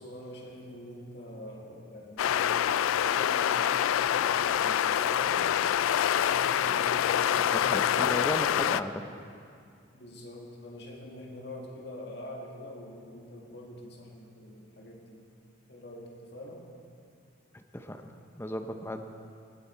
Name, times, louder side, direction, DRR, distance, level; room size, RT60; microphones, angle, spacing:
voice 1, 0.0-2.5 3.0-5.5 6.2-7.4 9.9-15.2 15.7-16.7, left 1 dB, 55° left, -1 dB, 1.9 m, -45 dB
sound 1, 2.2-8.8, left 10 dB, 90° left, 0.3 m, -26 dB
voice 2, 7.4-9.0 17.5-19.0, left 1 dB, 10° left, 6 dB, 0.6 m, -36 dB
20.0 x 9.4 x 4.5 m, 2.3 s
head